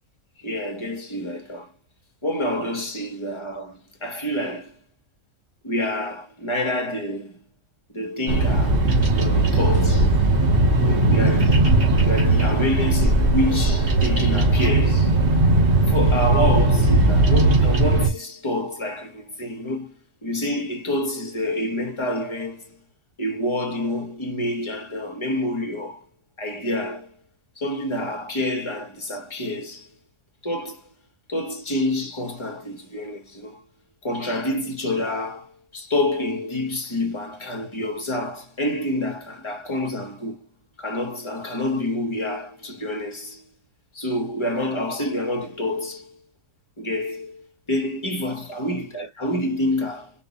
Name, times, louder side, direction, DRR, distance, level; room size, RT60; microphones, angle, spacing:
voice 1, 0.4-1.7 2.2-4.7 5.6-7.4 7.9-8.8 9.1-10.2 10.8-11.8 12.0-15.2 15.9-19.9 20.2-22.8 23.2-26.0 26.4-27.1 27.6-29.9 30.4-30.8 31.3-33.6 34.0-40.4 40.8-43.4 43.9-46.2 46.8-50.1, left 1 dB, 25° left, 0.8 m, -28 dB
Bird vocalization bird call bird song, 8.3-18.1, right 2 dB, 40° right, 1.4 m, -18 dB
4.6 x 2.4 x 3.9 m
omnidirectional pair, 1.6 m